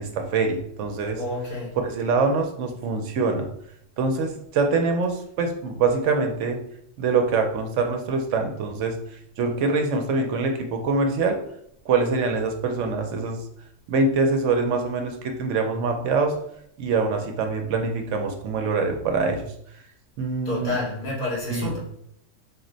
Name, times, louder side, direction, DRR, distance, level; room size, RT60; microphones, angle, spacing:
voice 1, 0.0-1.2 1.8-3.5 4.0-6.6 7.0-9.0 9.4-11.4 11.9-13.4 13.9-16.4 16.8-19.5 20.2-20.7 21.5-21.7, right 4 dB, 75° right, 4 dB, 0.9 m, -24 dB
voice 2, 1.1-1.8 20.4-21.8, left 2 dB, 55° left, -5 dB, 1.7 m, -29 dB
4.1 x 2.1 x 3.8 m, 0.72 s
omnidirectional pair, 1.3 m